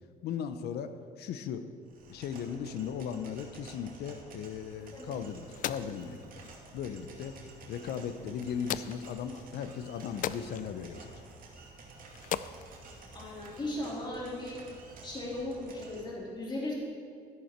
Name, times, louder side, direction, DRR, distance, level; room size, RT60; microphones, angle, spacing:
voice 1, 0.2-1.7 2.1-7.4 7.7-11.1, left 7 dB, 75° left, 10 dB, 0.8 m, -37 dB
sound 1, 1.9-16.0, right 3 dB, 55° right, 2.4 m, -51 dB
sound 2, 4.8-13.8, left 10 dB, 50° left, 0.4 m, -42 dB
voice 2, 13.1-14.6 15.0-16.7, left 1 dB, 25° left, -4 dB, 3.3 m, -37 dB
12.5 x 11.0 x 4.5 m, 2.2 s
cardioid pair, 110°, 17 cm